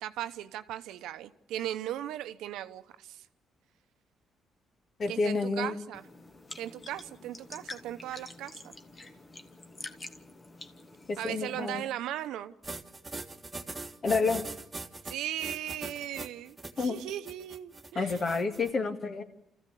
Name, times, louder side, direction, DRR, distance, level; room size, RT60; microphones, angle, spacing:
voice 1, 0.0-3.2 5.1-6.0 6.6-8.7 11.2-12.5 15.0-18.2, right 12 dB, 90° right, 0.9 m, -37 dB
voice 2, 5.0-5.8 11.1-11.8 14.0-14.5 16.8-17.0 18.0-19.2, left 4 dB, 45° left, 2.1 m, -29 dB
sound 1, 5.9-11.8, left 2 dB, 30° left, 1.5 m, -47 dB
sound 2, 12.6-18.7, right 3 dB, 20° right, 1.4 m, -41 dB
27.5 x 14.5 x 8.4 m
cardioid pair, 90°, 0 cm